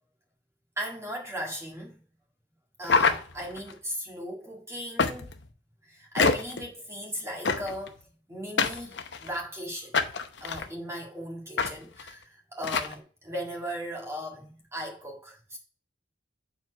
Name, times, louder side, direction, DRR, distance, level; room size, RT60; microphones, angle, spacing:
voice 1, 0.8-2.0 2.8-5.3 5.8-8.0 8.3-10.0 10.4-15.6, equal, 15° right, 1.8 m, -37 dB
sound 1, 2.8-3.7 5.0-5.5 6.2-6.6 7.4-7.9 8.6-9.4 9.9-10.7 11.6-11.7 12.0-12.1 12.6-12.9, left 4 dB, 60° left, 0.8 m, -26 dB
7.3 x 4.5 x 4.5 m
head